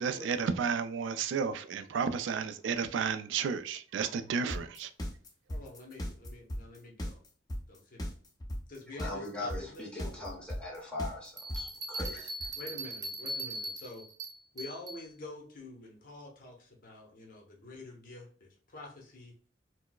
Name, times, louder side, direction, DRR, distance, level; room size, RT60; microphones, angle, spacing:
voice 1, 0.0-4.9, right 6 dB, 85° right, 0.3 m, -32 dB
sound 1, 4.5-12.5, equal, 20° left, 0.5 m, -36 dB
voice 2, 5.5-7.2 7.7-8.0 8.7-10.3 12.6-14.0 14.5-19.3, left 2 dB, 50° left, 0.8 m, -47 dB
voice 3, 8.9-12.5, left 2 dB, 5° left, 0.9 m, -41 dB
Bell, 11.4-15.0, right 1 dB, 20° right, 0.7 m, -40 dB
4.4 x 2.0 x 2.2 m
head